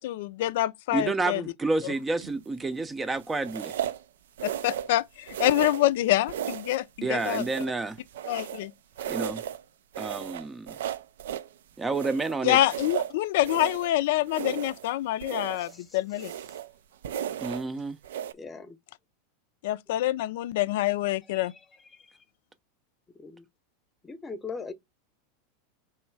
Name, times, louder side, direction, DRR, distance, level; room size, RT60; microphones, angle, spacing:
voice 1, 0.0-1.4 4.4-6.8 7.1-7.4 8.3-8.7 12.4-16.3 19.6-21.5, left 15 dB, 70° left, 0.4 m, -26 dB
voice 2, 0.9-3.7 7.0-8.0 9.1-9.4 10.0-10.8 11.8-12.6 17.4-18.0, right 3 dB, 15° right, 0.5 m, -30 dB
sound 1, 2.2-2.5 3.4-4.0 4.4-5.0 5.3-5.9 6.3-6.8 7.2-8.7 9.0-9.6 9.9-11.5 11.9-13.9 14.3-14.9 15.2-15.7 16.1-16.7 17.0-17.7 18.0-18.3, right 10 dB, 80° right, 0.4 m, -35 dB
voice 3, 18.4-18.8 23.2-23.4 24.0-24.7, left 4 dB, 20° left, 0.8 m, -38 dB
3.1 x 3.1 x 4.6 m
hypercardioid pair, 105°, 0 cm